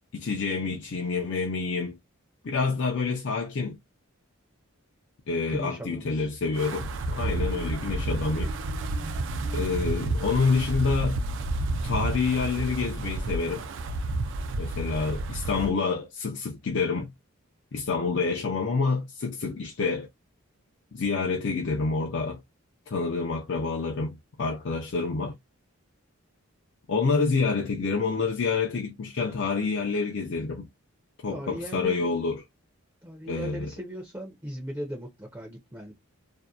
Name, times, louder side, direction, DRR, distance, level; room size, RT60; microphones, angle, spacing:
voice 1, 0.1-2.0 2.4-3.8 5.3-8.5 9.5-11.2 11.8-13.7 14.6-17.1 17.7-20.1 20.9-22.4 22.9-25.4 26.9-30.7 31.2-32.4 33.3-33.7, left 4 dB, 55° left, 0.5 m, -28 dB
voice 2, 5.5-6.2 31.3-32.1 33.0-35.9, equal, 10° right, 0.5 m, -38 dB
Wind, 6.6-15.7, right 2 dB, 60° right, 0.4 m, -30 dB
Marimba xylophone, 7.0-12.2, right 3 dB, 80° right, 0.8 m, -45 dB
2.6 x 2.1 x 2.2 m
head